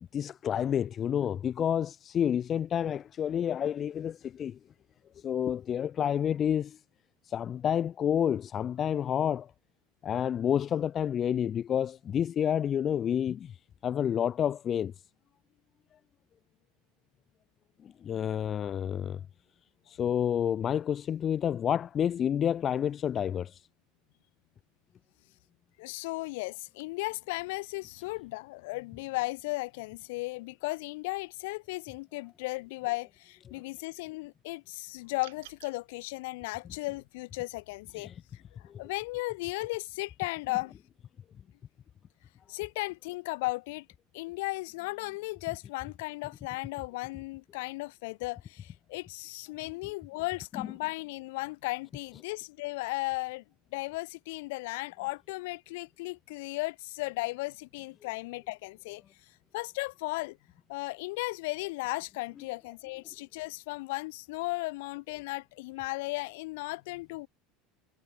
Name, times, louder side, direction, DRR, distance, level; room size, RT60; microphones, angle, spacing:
voice 1, 0.1-4.6 5.2-6.8 7.3-9.5 10.0-13.5 13.8-14.9 18.0-19.2 20.0-23.5 38.0-38.1, left 9 dB, 30° left, 0.5 m, -29 dB
voice 2, 25.8-40.7 42.5-43.9 44.1-53.4 53.7-59.0 59.5-60.4 60.7-67.3, left 23 dB, 75° left, 2.3 m, -36 dB
sound 1, 35.2-35.8, right 18 dB, 90° right, 5.0 m, -50 dB
supercardioid pair, 145°, 0 cm